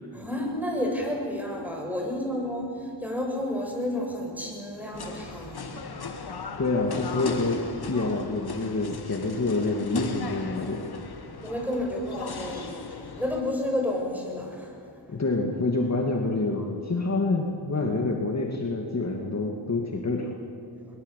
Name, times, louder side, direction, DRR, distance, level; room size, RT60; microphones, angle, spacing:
voice 1, 0.1-6.6 11.4-15.2 16.6-16.7, left 1 dB, 5° right, 0 dB, 7.5 m, -31 dB
sound 1, 4.9-13.4, left 4 dB, 60° left, 2.3 m, -37 dB
voice 2, 6.6-7.6 7.9-10.9 15.1-20.3, left 2 dB, 35° left, 1 dB, 2.6 m, -27 dB
22.5 x 22.0 x 8.5 m, 2.3 s
cardioid pair, 75°, 44 cm